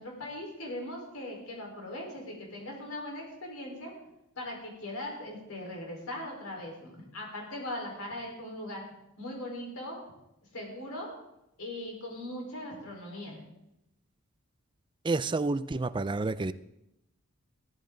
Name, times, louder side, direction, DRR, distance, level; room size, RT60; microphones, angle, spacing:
voice 1, 0.0-3.9 4.4-8.8 9.2-10.0 10.5-11.1 11.6-13.4, left 1 dB, 70° left, -1 dB, 4.5 m, -39 dB
voice 2, 15.0-16.5, right 3 dB, 20° right, 14 dB, 0.4 m, -29 dB
16.5 x 14.0 x 3.9 m, 0.86 s
head